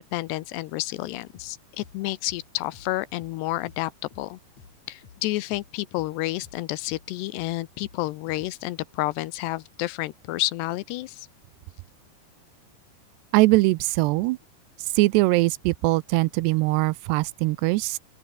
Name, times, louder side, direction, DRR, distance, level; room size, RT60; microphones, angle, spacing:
voice 1, 0.0-3.9 4.2-4.4 4.9-11.3, left 18 dB, 80° left, 2.9 m, -30 dB
sound 1, 1.1-8.5, left 5 dB, 45° left, 4.9 m, -52 dB
voice 2, 13.3-14.4 15.0-18.0, right 21 dB, 85° right, 2.7 m, -21 dB
open air
omnidirectional pair, 4.9 m